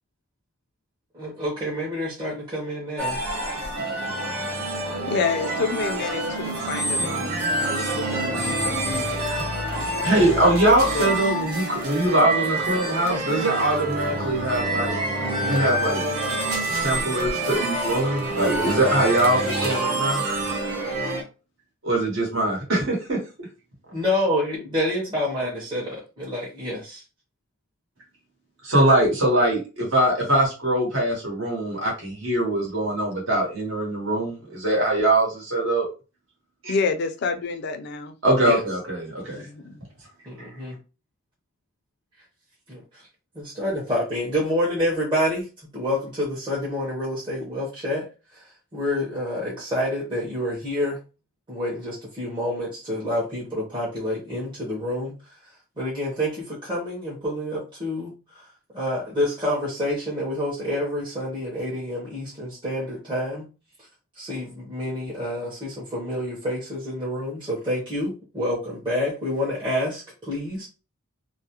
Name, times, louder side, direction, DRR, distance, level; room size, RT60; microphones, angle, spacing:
voice 1, 1.1-3.2 10.1-10.5 23.9-27.0 38.4-38.6 40.3-40.8 42.7-43.0 43.3-48.5 48.7-51.0 51.5-55.1 55.8-58.4 58.7-63.5 64.2-70.7, left 1 dB, 25° right, -7 dB, 0.7 m, -28 dB
sound 1, 3.0-21.2, right 2 dB, 90° right, 0.8 m, -27 dB
voice 2, 5.0-9.0 10.9-11.1 36.7-38.1 39.3-39.8, left 4 dB, 50° left, 7 dB, 0.4 m, -28 dB
voice 3, 10.0-15.0 15.4-16.1 16.7-20.2 21.8-23.2 28.6-35.9 36.6-36.7 38.2-39.4, right 1 dB, 65° right, -3 dB, 1.0 m, -22 dB
2.4 x 2.0 x 2.8 m, 0.32 s
head